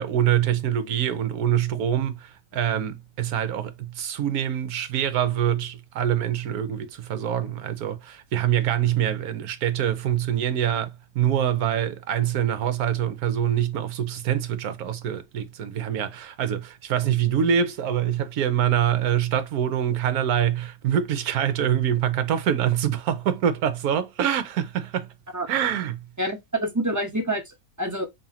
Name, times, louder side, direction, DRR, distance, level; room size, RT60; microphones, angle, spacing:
voice 1, 0.0-25.1 25.5-26.0, right 10 dB, 65° right, 1.2 m, -25 dB
voice 2, 26.2-28.1, right 1 dB, 15° right, 0.6 m, -27 dB
5.4 x 2.7 x 2.8 m
omnidirectional pair, 1.8 m